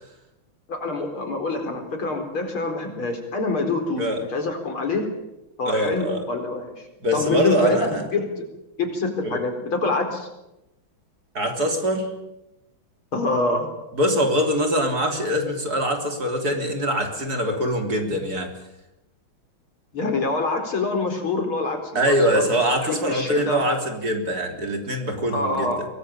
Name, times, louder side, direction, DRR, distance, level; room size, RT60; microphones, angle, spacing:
voice 1, 0.7-5.1 5.6-6.9 7.1-8.5 8.8-10.3 13.1-13.7 19.9-22.4 22.8-23.6 25.3-25.8, left 3 dB, 90° left, 4 dB, 5.2 m, -25 dB
voice 2, 5.6-6.2 7.0-8.0 9.2-9.4 11.3-12.1 13.9-18.5 22.0-25.9, equal, 45° right, 4 dB, 3.9 m, -23 dB
24.0 x 18.5 x 8.6 m, 0.93 s
omnidirectional pair, 2.3 m